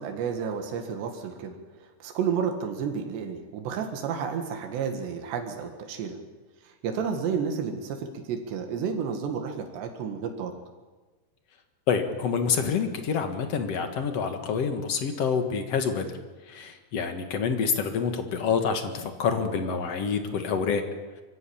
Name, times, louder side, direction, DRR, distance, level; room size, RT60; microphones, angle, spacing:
voice 1, 0.0-1.6 1.8-6.2 6.7-10.5, right 6 dB, 90° right, 4 dB, 4.0 m, -31 dB
voice 2, 11.9-16.1 16.5-20.8, left 6 dB, 55° left, 7 dB, 2.0 m, -27 dB
24.5 x 15.5 x 8.8 m, 1.3 s
omnidirectional pair, 4.8 m